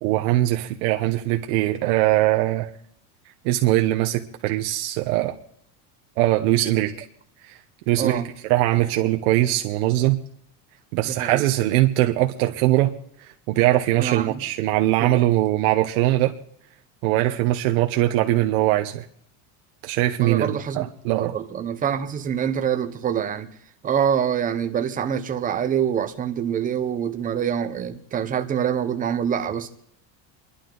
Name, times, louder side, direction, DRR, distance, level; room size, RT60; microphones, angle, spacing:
voice 1, 0.0-2.7 3.4-5.4 6.2-6.9 7.4-7.6 7.9-8.2 8.5-10.2 10.9-12.9 13.2-16.3 17.0-19.0 19.8-21.4, right 15 dB, 65° right, 1.2 m, -21 dB
voice 2, 8.0-8.3 11.0-11.4 14.0-14.4 15.0-15.1 20.2-20.9 21.2-23.5 23.8-29.7, right 8 dB, 20° right, 0.9 m, -25 dB
28.5 x 11.5 x 4.0 m
cardioid pair, 180°, 45 cm